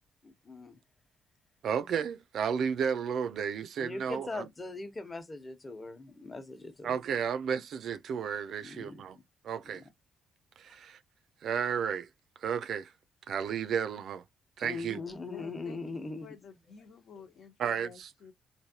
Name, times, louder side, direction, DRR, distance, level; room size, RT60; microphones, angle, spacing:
voice 1, 0.2-0.8 3.8-6.9 8.6-9.0 9.7-9.8 14.6-16.3, left 3 dB, 25° left, 1.0 m, -40 dB
voice 2, 1.6-4.5 6.8-9.2 9.4-9.8 10.6-11.0 11.4-12.1 12.4-12.9 13.3-14.2 14.6-15.0 17.6-18.1, right 7 dB, 65° right, 0.4 m, -32 dB
voice 3, 15.3-15.8 16.2-18.3, left 6 dB, 65° left, 1.1 m, -51 dB
3.2 x 2.6 x 2.8 m
cardioid pair, 90°, 0 cm